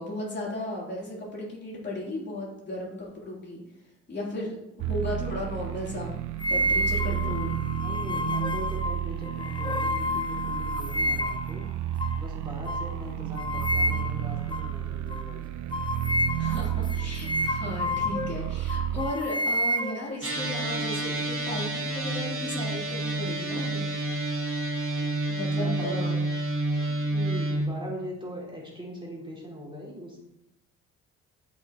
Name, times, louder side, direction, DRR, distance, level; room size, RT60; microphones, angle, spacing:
voice 1, 0.0-3.6 4.1-6.1 6.5-7.6 16.4-23.9 25.3-26.2, left 1 dB, 35° left, -4 dB, 3.4 m, -35 dB
sound 1, 4.8-19.1, right 11 dB, 70° right, 0.6 m, -32 dB
sound 2, 6.4-11.5 12.0-12.2 12.7-12.9 13.4-14.3 14.5-14.7 15.1-15.3 15.7-18.4 18.7-20.5, left 1 dB, 15° left, 0.5 m, -29 dB
voice 2, 7.8-11.7 12.2-15.4 25.5-26.1 26.8-30.2, equal, 15° right, -4 dB, 2.7 m, -40 dB
sound 3, 20.2-27.7, right 2 dB, 45° right, 2.0 m, -29 dB
12.5 x 5.8 x 3.0 m, 0.86 s
cardioid pair, 90°, 30 cm